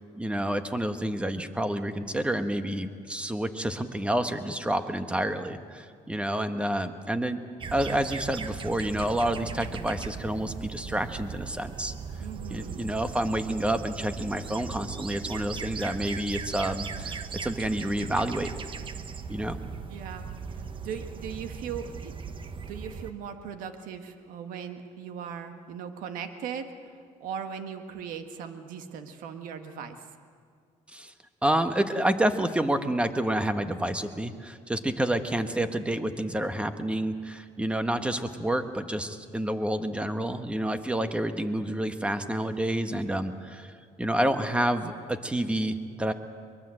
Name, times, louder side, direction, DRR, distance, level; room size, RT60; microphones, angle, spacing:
voice 1, 0.0-7.4 7.7-11.9 12.5-18.5 19.3-19.6 30.9-31.1 31.4-43.7 44.0-46.1, right 1 dB, 10° right, 8 dB, 1.3 m, -29 dB
sound 1, 7.6-23.1, right 5 dB, 40° right, 1.1 m, -38 dB
voice 2, 12.2-12.9 19.9-30.0, right 7 dB, 90° right, 7 dB, 1.6 m, -39 dB
23.0 x 22.0 x 7.8 m, 2.1 s
cardioid pair, 120°, 14 cm